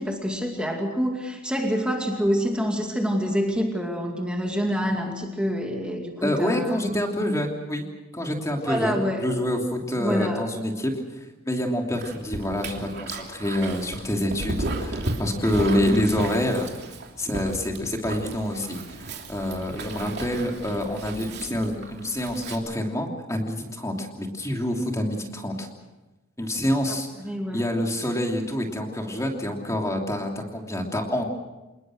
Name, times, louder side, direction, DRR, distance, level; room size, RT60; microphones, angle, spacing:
voice 1, 0.0-6.8 8.6-9.3 10.0-10.4 27.2-27.7, equal, 5° right, 1 dB, 2.3 m, -26 dB
voice 2, 6.2-7.9 8.1-10.9 11.4-16.7 17.2-25.7 26.4-27.1 27.5-31.2, left 1 dB, 15° left, 2 dB, 2.9 m, -27 dB
Dog, 12.0-22.6, right 1 dB, 50° right, 3.0 m, -34 dB
28.0 x 20.5 x 6.5 m, 1.1 s
head